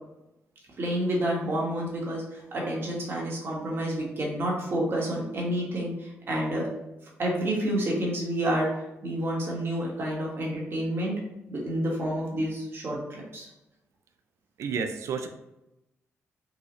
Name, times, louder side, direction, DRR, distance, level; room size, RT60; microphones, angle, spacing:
voice 1, 0.8-6.7 7.2-11.2 11.5-13.5, right 1 dB, 50° right, -3 dB, 1.3 m, -29 dB
voice 2, 14.6-15.3, right 5 dB, 75° right, 6 dB, 0.4 m, -30 dB
4.0 x 2.4 x 3.0 m, 0.90 s
cardioid pair, 95°, 5 cm